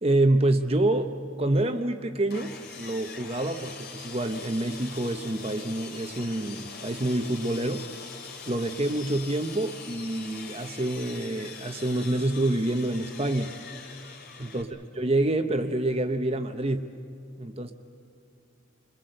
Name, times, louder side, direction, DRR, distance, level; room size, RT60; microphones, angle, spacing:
voice 1, 0.0-7.8 8.5-13.5 14.4-14.7 15.0-16.9 17.4-17.7, right 1 dB, 30° right, 7 dB, 0.9 m, -27 dB
Sawing, 2.3-14.6, left 5 dB, 50° left, 3.0 m, -43 dB
28.5 x 22.0 x 7.8 m, 2.5 s
head